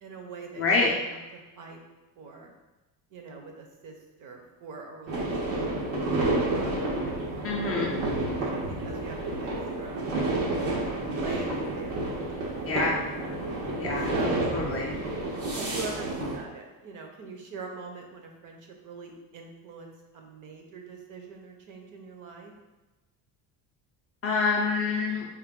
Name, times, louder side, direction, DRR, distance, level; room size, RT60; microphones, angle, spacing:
voice 1, 0.0-1.2 1.6-1.8 2.2-2.5 3.1-6.2 6.4-7.0 7.5-9.5 9.8-10.0 10.7-12.9 14.1-14.5 15.5-22.5, right 3 dB, 45° right, 2 dB, 0.7 m, -43 dB
voice 2, 0.6-0.9 7.4-7.9 12.7-13.0 13.8-14.9 24.2-25.3, left 4 dB, 35° left, -3 dB, 0.4 m, -27 dB
sound 1, 5.1-16.4, right 2 dB, 85° right, 1.3 m, -30 dB
4.4 x 2.2 x 3.5 m, 1.1 s
cardioid pair, 140°, 42 cm